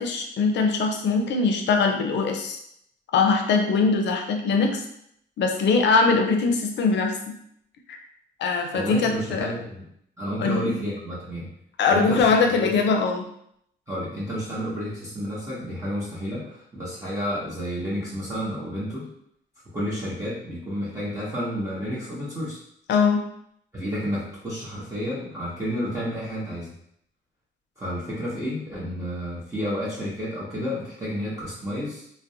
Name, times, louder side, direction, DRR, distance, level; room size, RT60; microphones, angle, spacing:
voice 1, 0.0-2.6 3.1-4.8 5.4-7.4 7.9-8.0 8.4-9.5 10.4-10.7 11.8-13.2 22.9-23.2, left 4 dB, 65° left, 3 dB, 0.5 m, -22 dB
voice 2, 8.7-9.8 10.2-11.5 11.9-12.7 13.9-19.0 19.7-22.6 23.7-26.7 27.8-32.1, equal, 15° right, -8 dB, 0.8 m, -30 dB
2.5 x 2.0 x 2.7 m, 0.72 s
cardioid pair, 90°, 20 cm